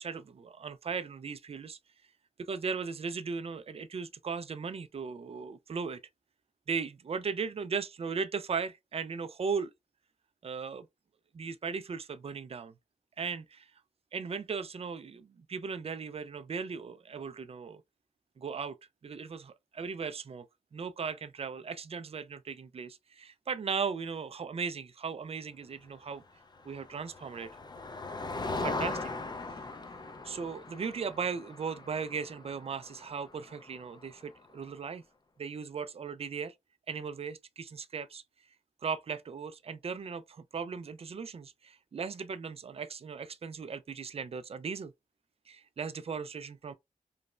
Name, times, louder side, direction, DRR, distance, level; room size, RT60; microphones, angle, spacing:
voice 1, 0.0-1.8 2.4-6.0 6.7-9.7 10.4-10.9 11.3-12.7 13.2-13.7 14.1-17.8 18.4-18.8 19.0-26.2 26.6-27.5 28.6-29.1 29.5-29.7 30.2-35.0 35.4-36.5 36.9-38.2 38.8-44.9 45.5-46.7, right 5 dB, 40° right, 0.4 m, -37 dB
Motor vehicle (road), 26.5-34.3, left 3 dB, 30° left, 0.4 m, -40 dB
3.1 x 2.0 x 2.4 m
cardioid pair, 50°, 15 cm